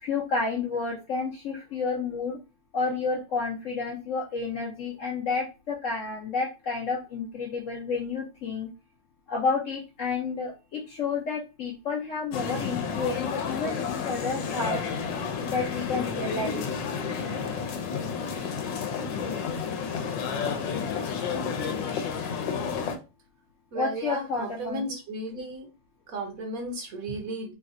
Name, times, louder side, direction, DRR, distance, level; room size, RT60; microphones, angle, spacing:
voice 1, 0.0-2.4 2.7-8.7 9.3-14.8 15.4-16.6 23.7-25.0, left 4 dB, 65° left, -2 dB, 0.7 m, -30 dB
sound 1, 12.3-23.0, left 6 dB, 90° left, 1.3 m, -31 dB
voice 2, 23.7-25.7 26.1-27.5, right 2 dB, 60° right, 3 dB, 1.0 m, -34 dB
3.1 x 2.1 x 3.6 m, 0.30 s
omnidirectional pair, 1.9 m